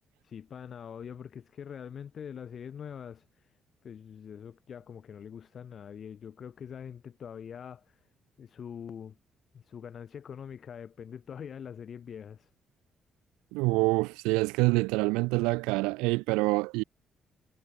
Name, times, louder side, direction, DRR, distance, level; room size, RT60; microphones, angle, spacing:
voice 1, 0.2-3.5 3.8-8.0 8.4-9.2 9.5-12.5, left 8 dB, 60° left, 1.3 m, -44 dB
voice 2, 13.5-16.8, right 25 dB, 90° right, 0.4 m, -26 dB
supercardioid pair, 55°, 0 cm